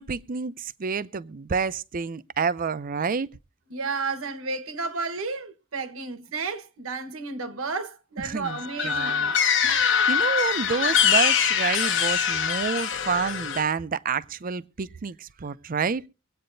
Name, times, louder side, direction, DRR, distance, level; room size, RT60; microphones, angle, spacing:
voice 1, 0.0-3.3 8.2-8.6 8.8-9.3 9.6-16.0, right 5 dB, 40° right, 0.5 m, -29 dB
voice 2, 3.7-9.4, right 4 dB, 80° right, 1.3 m, -32 dB
sound 1, 8.5-13.6, left 7 dB, 60° left, 1.0 m, -23 dB
24.5 x 8.7 x 2.6 m
head